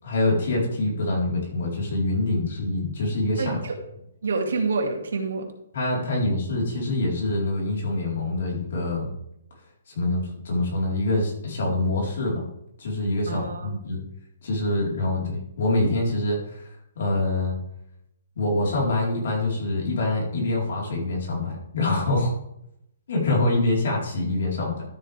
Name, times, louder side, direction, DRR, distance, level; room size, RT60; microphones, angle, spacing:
voice 1, 0.0-3.6 5.7-9.1 9.9-12.4 12.8-14.0 14.4-17.6 18.4-22.3 23.1-24.8, left 2 dB, 55° left, -2 dB, 4.3 m, -25 dB
voice 2, 3.4-3.8 4.2-5.5 13.3-13.7, right 4 dB, 85° right, 3 dB, 2.4 m, -27 dB
13.0 x 7.9 x 3.5 m, 0.79 s
hypercardioid pair, 170°, 0 cm